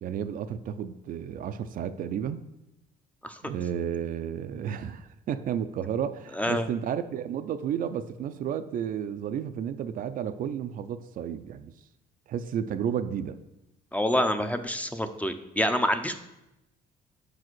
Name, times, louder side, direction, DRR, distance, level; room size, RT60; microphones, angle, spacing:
voice 1, 0.0-2.4 3.4-11.7 12.3-13.4, right 8 dB, 55° right, 10 dB, 0.4 m, -32 dB
voice 2, 6.4-6.7 13.9-16.1, left 1 dB, 10° left, 8 dB, 0.5 m, -27 dB
5.5 x 4.9 x 6.1 m, 0.90 s
cardioid pair, 110°, 17 cm